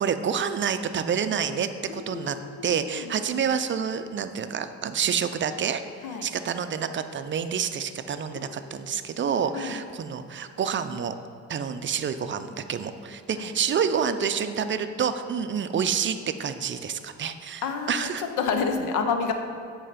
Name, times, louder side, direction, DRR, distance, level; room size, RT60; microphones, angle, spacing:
voice 1, 0.0-2.4 2.6-5.8 6.2-11.1 11.5-18.2, right 7 dB, 40° right, 10 dB, 0.4 m, -28 dB
voice 2, 1.9-3.1 6.0-6.3 8.4-9.0 9.5-9.8 13.4-13.5 17.6-19.3, left 5 dB, 85° left, 6 dB, 0.8 m, -30 dB
7.8 x 4.8 x 5.0 m, 2.4 s
cardioid pair, 90°, 30 cm